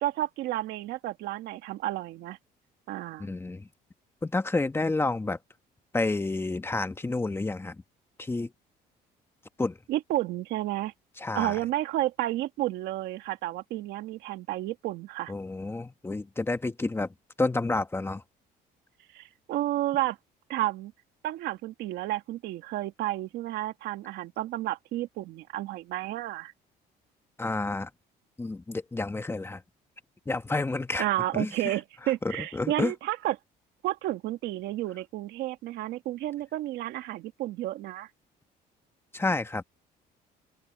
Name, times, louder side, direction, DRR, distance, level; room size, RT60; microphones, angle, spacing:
voice 1, 0.0-2.4 2.9-3.3 9.9-10.9 11.3-15.3 19.1-20.2 20.5-20.9 21.2-26.5 31.0-33.4 33.8-38.1, right 15 dB, 80° right, 2.0 m, -31 dB
voice 2, 3.2-3.7 4.2-5.4 5.9-7.8 8.2-8.5 9.6-9.8 11.2-11.6 15.3-18.2 27.4-27.9 28.4-29.6 30.2-31.0 31.3-31.8 32.2-32.9 39.1-39.6, left 2 dB, 15° left, 1.4 m, -30 dB
cardioid pair, 110°, 17 cm